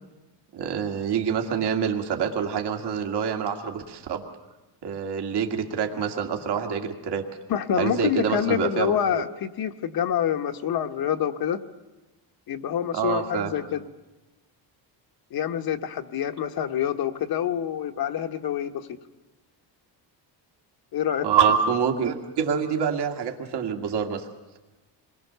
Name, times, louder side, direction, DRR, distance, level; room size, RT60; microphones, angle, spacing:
voice 1, 0.5-4.2 4.8-7.3 7.8-9.2 12.9-13.5 21.2-24.3, right 7 dB, 65° right, 3 dB, 2.3 m, -26 dB
voice 2, 7.5-11.6 12.5-13.8 15.3-18.9 20.9-21.3, left 9 dB, 55° left, 7 dB, 1.3 m, -26 dB
27.5 x 22.0 x 6.9 m, 1.1 s
cardioid pair, 135°, 43 cm